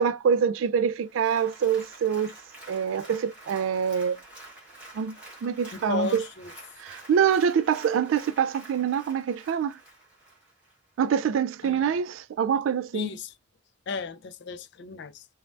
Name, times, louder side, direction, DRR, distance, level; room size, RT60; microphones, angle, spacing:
voice 1, 0.0-2.3 2.7-4.2 4.9-6.2 6.8-9.8 11.0-13.1, right 7 dB, 90° right, 0.3 m, -25 dB
Applause, 1.0-10.8 11.2-11.3, right 2 dB, 5° right, 1.3 m, -48 dB
voice 2, 5.7-6.5 11.6-11.9 12.9-13.3 13.9-15.3, left 4 dB, 60° left, 0.4 m, -34 dB
3.2 x 2.1 x 2.5 m
head